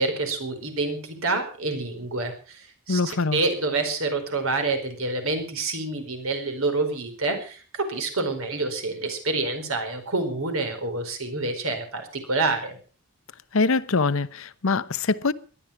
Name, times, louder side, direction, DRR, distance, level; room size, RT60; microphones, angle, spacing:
voice 1, 0.0-12.8, right 3 dB, 65° right, 4.7 m, -27 dB
voice 2, 2.9-3.4 13.5-15.3, left 3 dB, 65° left, 0.8 m, -23 dB
19.0 x 12.0 x 5.8 m
head